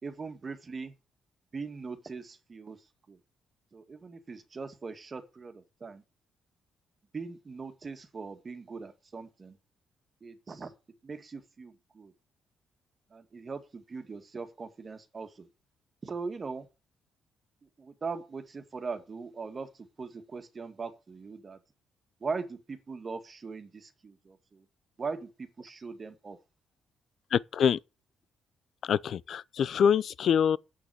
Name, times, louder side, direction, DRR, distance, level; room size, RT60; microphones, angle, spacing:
voice 1, 0.0-0.9 1.5-2.8 3.1-3.2 3.7-6.0 7.1-9.6 10.2-10.7 11.0-12.1 13.1-15.5 16.0-16.7 17.8-21.6 22.2-24.6 25.0-26.4, right 4 dB, 35° right, 2.0 m, -40 dB
voice 2, 27.3-27.8 28.8-30.6, left 8 dB, 60° left, 0.5 m, -25 dB
8.5 x 6.1 x 7.7 m
cardioid pair, 90°, 0 cm